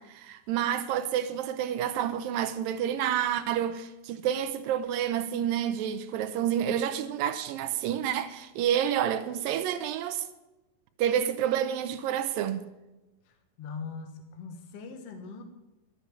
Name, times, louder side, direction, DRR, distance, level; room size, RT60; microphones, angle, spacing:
voice 1, 0.0-10.3 11.0-12.6, right 10 dB, 80° right, 2.2 m, -29 dB
voice 2, 13.3-15.4, left 5 dB, 65° left, 1.5 m, -41 dB
12.0 x 8.3 x 8.2 m
omnidirectional pair, 4.4 m